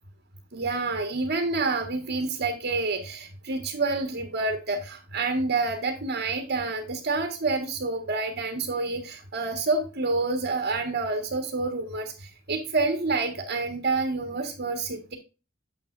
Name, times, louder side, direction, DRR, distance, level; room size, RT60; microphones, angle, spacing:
voice 1, 0.5-15.2, right 3 dB, 55° right, 4 dB, 1.5 m, -28 dB
9.6 x 7.2 x 2.6 m, 0.32 s
head